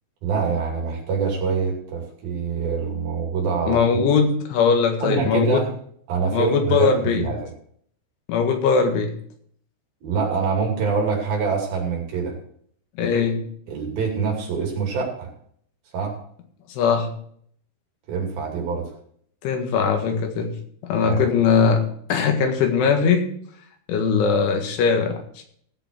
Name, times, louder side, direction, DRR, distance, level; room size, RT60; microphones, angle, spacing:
voice 1, 0.2-4.0 5.0-5.7 6.1-7.4 10.0-12.4 13.7-15.3 15.9-16.2 18.1-18.9 21.0-21.2, right 5 dB, 55° right, 0 dB, 4.1 m, -25 dB
voice 2, 3.7-5.6 6.3-7.3 8.3-9.1 13.0-13.4 16.7-17.1 19.4-20.5 20.9-21.8 22.1-23.3 23.9-25.4, left 5 dB, 80° left, 4 dB, 4.1 m, -20 dB
17.0 x 8.1 x 4.6 m, 0.62 s
omnidirectional pair, 5.5 m